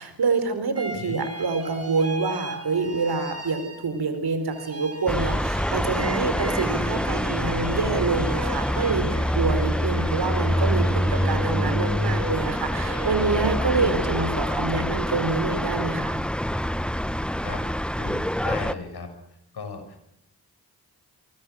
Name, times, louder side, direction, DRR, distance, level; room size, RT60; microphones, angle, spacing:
voice 1, 0.0-16.2, right 4 dB, 70° right, 10 dB, 4.6 m, -26 dB
sound 1, 0.8-4.2 4.5-15.1, right 2 dB, 40° right, 6.3 m, -37 dB
sound 2, 5.1-18.7, equal, ahead, 1.2 m, -26 dB
voice 2, 18.0-19.1 19.5-20.0, left 5 dB, 70° left, 7 dB, 6.4 m, -36 dB
26.0 x 23.0 x 6.5 m, 0.76 s
cardioid pair, 45°, 40 cm